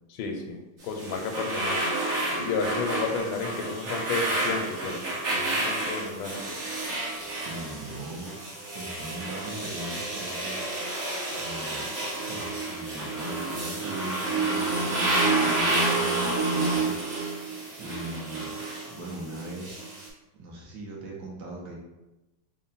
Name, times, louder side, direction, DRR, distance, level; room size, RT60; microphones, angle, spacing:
voice 1, 0.1-1.9 2.3-5.0 5.4-6.4, left 4 dB, 85° left, 3 dB, 1.4 m, -32 dB
sound 1, 0.8-20.1, right 2 dB, 45° right, 1.1 m, -29 dB
voice 2, 5.8-6.1 7.2-8.3 8.7-10.8 11.3-11.9 12.3-17.0 17.8-18.6 18.9-19.8 20.3-21.7, right 2 dB, 70° right, -2 dB, 1.2 m, -40 dB
3.6 x 2.1 x 3.9 m, 1.0 s
omnidirectional pair, 2.2 m